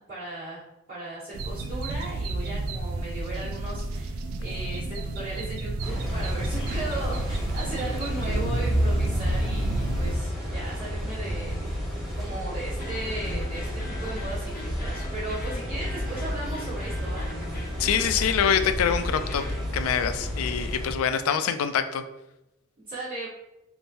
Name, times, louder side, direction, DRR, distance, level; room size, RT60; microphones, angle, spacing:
voice 1, 0.1-0.6 0.9-11.8 12.1-17.2 20.1-20.3 20.6-20.7 22.9-23.3, right 2 dB, 45° right, -13 dB, 1.2 m, -37 dB
sound 1, 1.3-10.2, right 2 dB, 85° right, 0.3 m, -31 dB
sound 2, 5.8-20.9, equal, ahead, 1.4 m, -31 dB
sound 3, 12.8-19.7, left 1 dB, 45° left, 0.7 m, -43 dB
voice 2, 17.8-19.4 19.7-22.0, left 8 dB, 85° left, 10 dB, 0.3 m, -25 dB
3.6 x 2.6 x 2.6 m, 0.92 s
head